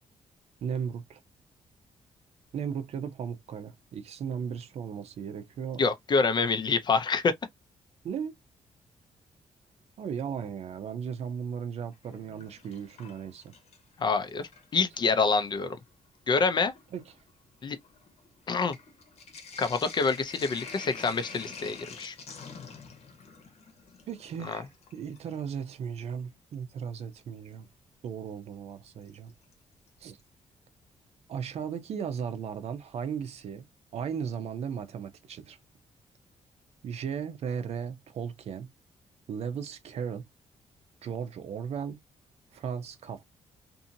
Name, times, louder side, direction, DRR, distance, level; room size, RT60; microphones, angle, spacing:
voice 1, 0.6-1.2 2.5-5.8 8.0-8.3 10.0-13.5 16.9-17.0 24.1-27.7 28.0-29.3 30.0-30.2 31.3-33.6 33.9-35.6 36.8-38.7 39.3-40.2 41.0-42.0 42.5-43.2, right 7 dB, 60° right, 0.6 m, -36 dB
voice 2, 5.8-7.3 14.0-14.4 14.7-15.8 16.3-16.7 17.6-17.8 18.5-18.7 19.6-22.1 24.5-24.6, left 4 dB, 40° left, 0.5 m, -26 dB
Sink (filling or washing), 11.9-14.0 14.3-15.1 15.9-16.0 16.3-25.4 27.2-27.3 29.1-29.5 29.9-30.0 30.2-30.3, left 5 dB, 65° left, 1.0 m, -47 dB
2.7 x 2.6 x 2.6 m
cardioid pair, 140°, 12 cm